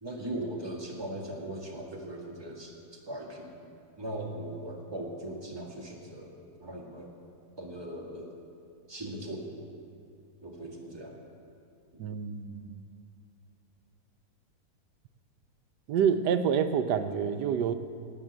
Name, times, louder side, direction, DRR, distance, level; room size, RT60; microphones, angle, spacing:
voice 1, 0.0-2.7 3.1-3.5 4.0-7.1 7.6-8.3 8.9-9.6 10.4-11.2, right 1 dB, 15° right, -2 dB, 1.7 m, -39 dB
voice 2, 12.0-12.8 15.9-17.8, right 7 dB, 80° right, 9 dB, 1.3 m, -27 dB
17.5 x 6.4 x 8.0 m, 2.5 s
omnidirectional pair, 1.8 m